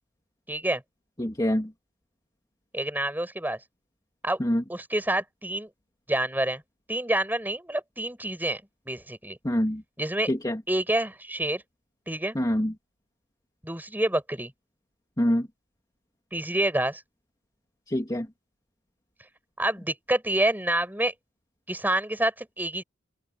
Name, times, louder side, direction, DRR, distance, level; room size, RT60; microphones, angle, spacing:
voice 1, 0.5-0.8 2.7-3.6 4.2-4.4 4.7-5.7 6.1-6.6 6.9-9.4 10.0-10.3 10.7-11.6 12.1-12.4 13.6-14.5 16.3-17.0 19.6-21.1 21.7-22.8, right 1 dB, 10° right, 7.5 m, -27 dB
voice 2, 1.2-1.7 4.4-4.6 9.4-9.8 10.3-10.6 12.4-12.7 15.2-15.5 17.9-18.3, equal, 20° left, 2.5 m, -25 dB
head